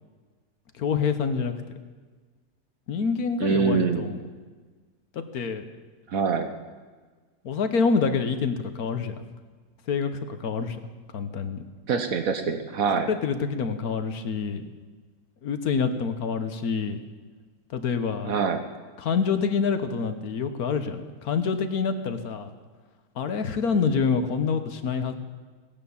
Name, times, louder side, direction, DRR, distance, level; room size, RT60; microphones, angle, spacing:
voice 1, 0.8-1.5 2.9-4.2 5.1-5.6 7.4-9.1 9.9-10.1 10.4-10.8 11.1-11.6 13.1-14.7 15.4-17.0 17.7-18.4 19.0-22.5 23.1-25.1, left 5 dB, 75° left, 9 dB, 1.5 m, -26 dB
voice 2, 3.4-4.1 6.1-6.5 11.9-13.1 18.3-18.6, right 5 dB, 65° right, 7 dB, 1.3 m, -24 dB
17.5 x 10.5 x 7.1 m, 1.4 s
omnidirectional pair, 1.6 m